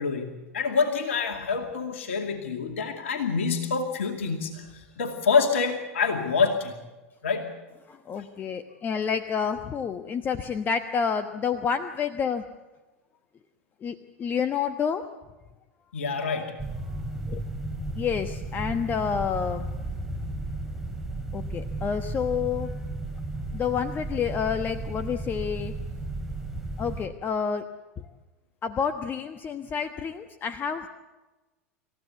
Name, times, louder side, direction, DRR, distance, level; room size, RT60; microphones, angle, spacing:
voice 1, 0.0-6.7 7.2-7.5 15.9-16.5, left 5 dB, 65° left, 4 dB, 2.5 m, -26 dB
voice 2, 7.9-12.4 13.8-15.0 17.3-17.4 18.0-19.7 21.3-22.7 23.5-25.7 26.8-27.6 28.0-28.1 28.6-30.9, left 6 dB, 25° left, 9 dB, 1.2 m, -29 dB
sound 1, 16.6-27.1, right 2 dB, 5° right, 3.3 m, -34 dB
27.5 x 15.0 x 8.3 m, 1.1 s
figure-of-eight pair, 90°, 7 cm